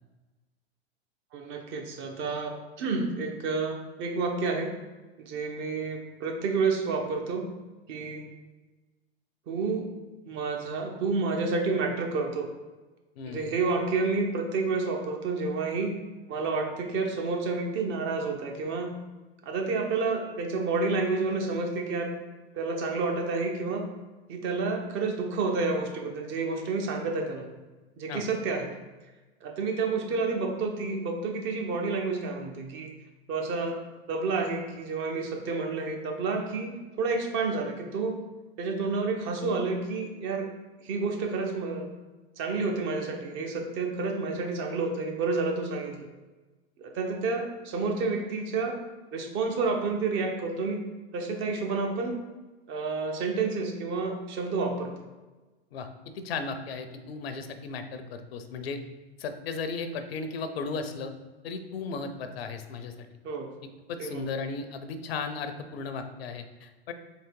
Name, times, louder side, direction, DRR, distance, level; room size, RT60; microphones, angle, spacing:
voice 1, 1.3-4.7 5.2-7.5 7.9-8.2 9.5-9.9 10.2-12.5 13.3-16.0 16.3-19.0 19.4-22.1 22.5-23.9 24.3-27.5 28.0-28.7 29.4-32.9 33.3-33.8 34.1-38.2 38.6-40.5 40.8-41.9 42.4-46.1 46.8-48.8 49.1-50.8 51.1-52.2 52.7-54.9 63.2-63.5 64.0-64.2, right 4 dB, 40° right, 3 dB, 0.9 m, -29 dB
voice 2, 13.2-13.5 28.1-28.3 55.7-55.9 56.1-58.8 59.2-61.1 61.4-62.9 63.9-66.9, left 4 dB, 70° left, 8 dB, 0.6 m, -35 dB
3.8 x 3.0 x 4.5 m, 1.2 s
hypercardioid pair, 100°, 32 cm